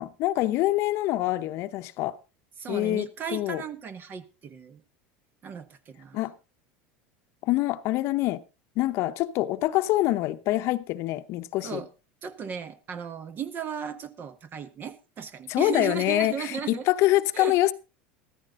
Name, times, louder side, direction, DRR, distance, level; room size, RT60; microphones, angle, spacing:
voice 1, 0.0-2.2 2.7-3.6 6.1-6.3 7.4-8.4 8.8-11.8 15.5-17.7, left 16 dB, 55° left, 0.9 m, -25 dB
voice 2, 2.6-4.8 5.4-6.2 11.6-11.9 12.2-16.9 17.3-17.6, right 7 dB, 40° right, 1.5 m, -36 dB
14.0 x 13.5 x 3.8 m
supercardioid pair, 105°, 5 cm